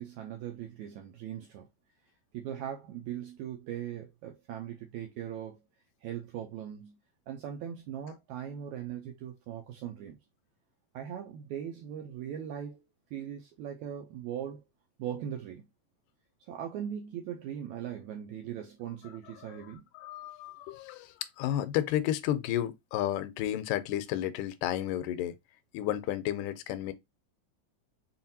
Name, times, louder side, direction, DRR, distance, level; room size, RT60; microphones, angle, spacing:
voice 1, 0.0-1.7 2.3-5.6 6.0-7.0 7.3-10.2 10.9-12.9 13.1-14.6 15.0-15.6 16.5-19.9, right 9 dB, 80° right, 1.7 m, -39 dB
voice 2, 19.4-25.4 25.7-26.9, left 12 dB, 80° left, 2.0 m, -32 dB
5.6 x 2.5 x 2.7 m
omnidirectional pair, 3.9 m